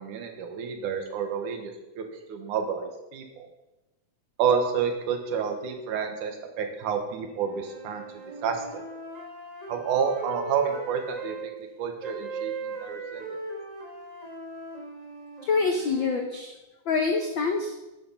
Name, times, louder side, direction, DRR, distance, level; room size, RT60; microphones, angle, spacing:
voice 1, 0.0-3.5 4.4-8.8 9.7-11.5 11.8-13.4, right 6 dB, 80° right, 5 dB, 2.8 m, -30 dB
sound 1, 7.4-11.5 12.0-16.2, right 3 dB, 20° right, 1.1 m, -39 dB
voice 2, 15.4-16.5 16.9-17.7, left 4 dB, 80° left, 4 dB, 1.1 m, -26 dB
11.0 x 8.7 x 5.5 m, 1.0 s
omnidirectional pair, 3.5 m